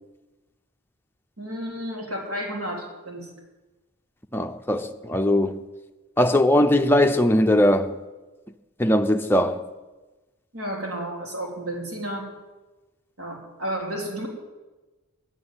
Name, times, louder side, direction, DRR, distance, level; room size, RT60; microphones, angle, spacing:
voice 1, 1.4-3.3 10.5-12.3 13.2-14.3, right 1 dB, 80° right, 3.1 m, -32 dB
voice 2, 4.3-5.6 6.2-8.0 8.8-9.7, left 1 dB, 10° left, 0.5 m, -20 dB
11.0 x 7.8 x 9.6 m
head